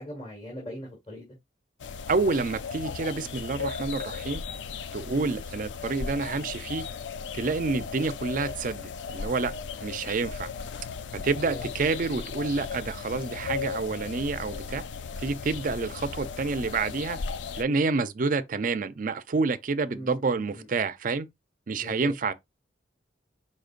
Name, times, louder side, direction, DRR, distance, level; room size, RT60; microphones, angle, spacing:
voice 1, 0.0-1.4 5.2-5.4 11.3-11.6 19.9-20.7 21.7-22.1, left 1 dB, 35° left, 1.7 m, -41 dB
sound 1, 1.8-17.6, left 5 dB, 80° left, 0.4 m, -36 dB
voice 2, 2.1-4.4 4.9-6.9 7.3-9.5 9.8-10.5 11.2-14.8 15.2-17.2 17.6-21.3 21.7-22.3, right 4 dB, 45° right, 0.5 m, -28 dB
5.1 x 4.3 x 2.5 m
head